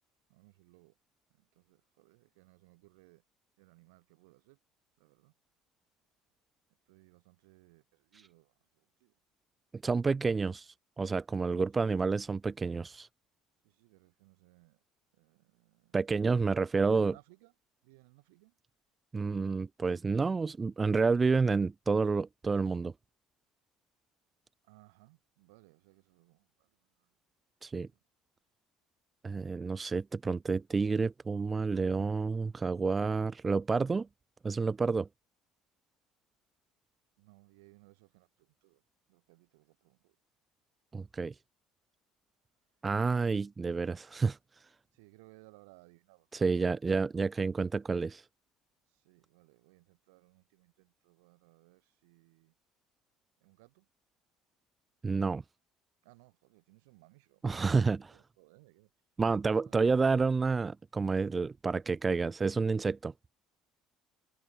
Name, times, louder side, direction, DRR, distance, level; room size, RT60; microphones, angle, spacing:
voice 1, 0.3-0.9 1.4-3.2 3.6-4.6 5.0-5.3 6.9-9.1 13.6-14.8 15.1-16.0 16.5-17.5 17.8-18.5 24.7-26.7 27.9-28.0 37.2-38.8 39.1-40.1 43.2-43.4 44.9-46.6 49.0-52.5 53.4-53.9 56.0-58.9 59.6-59.9, right 25 dB, 85° right, 4.3 m, -62 dB
voice 2, 9.8-13.1 15.9-17.2 19.1-22.9 27.6-27.9 29.2-34.1 34.4-35.1 40.9-41.3 42.8-44.4 46.3-48.2 55.0-55.4 57.4-58.1 59.2-63.1, right 4 dB, 25° right, 0.3 m, -29 dB
hypercardioid pair, 70°, 0 cm